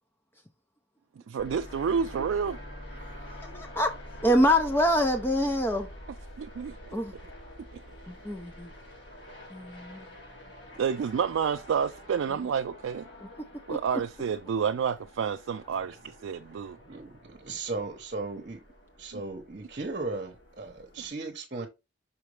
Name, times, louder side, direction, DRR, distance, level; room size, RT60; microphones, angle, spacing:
voice 1, 1.3-2.6 6.4-6.9 7.2-7.3 7.7-7.8 10.8-13.1 13.7-16.8 19.1-19.2, right 6 dB, 80° right, 0.3 m, -29 dB
sound 1, 1.4-21.1, equal, 60° left, 3.0 m, -47 dB
voice 2, 3.4-3.9 4.2-5.9 6.9-7.1 8.1-8.7 9.5-10.0 13.7-13.8, equal, 10° left, 0.5 m, -25 dB
voice 3, 16.8-18.6 19.0-21.7, right 3 dB, 45° right, 0.9 m, -36 dB
5.8 x 5.1 x 3.3 m
head